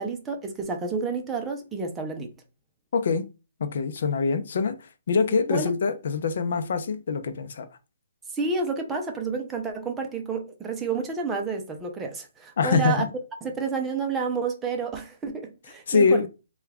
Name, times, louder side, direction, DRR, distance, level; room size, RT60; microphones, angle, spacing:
voice 1, 0.0-2.3 5.3-5.7 8.3-13.0 13.4-16.3, right 4 dB, 10° right, 0.6 m, -30 dB
voice 2, 2.9-3.2 3.6-4.7 5.1-7.7 12.6-13.1 15.9-16.3, left 5 dB, 60° left, 0.6 m, -24 dB
3.4 x 2.3 x 3.3 m
hypercardioid pair, 160°, 0 cm